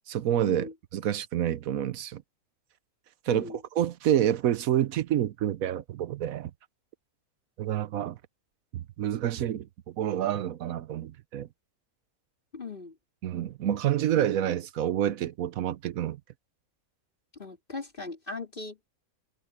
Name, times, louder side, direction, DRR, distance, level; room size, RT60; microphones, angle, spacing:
voice 1, 0.1-2.2 3.3-6.5 7.6-8.2 8.7-11.5 13.2-16.2, right 11 dB, 70° right, 1.1 m, -28 dB
voice 2, 3.3-3.6 12.5-12.9 17.4-18.9, left 3 dB, 35° left, 4.2 m, -39 dB
omnidirectional pair, 1.6 m